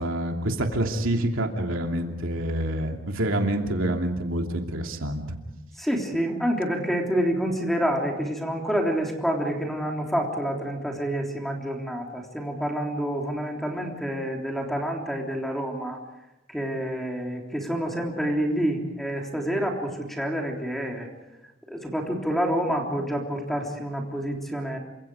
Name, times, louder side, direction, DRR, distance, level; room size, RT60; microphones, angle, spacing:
voice 1, 0.0-5.2, right 1 dB, 80° right, 2 dB, 2.9 m, -27 dB
voice 2, 5.8-16.0 16.5-21.1 21.7-24.8, equal, ahead, 1 dB, 3.5 m, -28 dB
28.5 x 26.0 x 4.9 m, 0.96 s
head